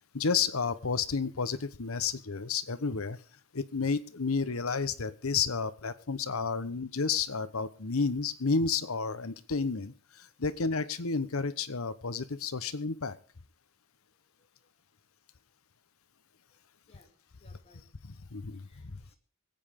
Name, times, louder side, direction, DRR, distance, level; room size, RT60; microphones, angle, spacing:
voice 1, 0.1-3.2 3.5-13.2 18.0-19.0, left 5 dB, 85° left, 15 dB, 1.0 m, -31 dB
voice 2, 16.9-17.9 18.6-19.2, left 2 dB, 30° left, 2 dB, 3.0 m, -64 dB
25.0 x 8.9 x 3.6 m, 0.40 s
head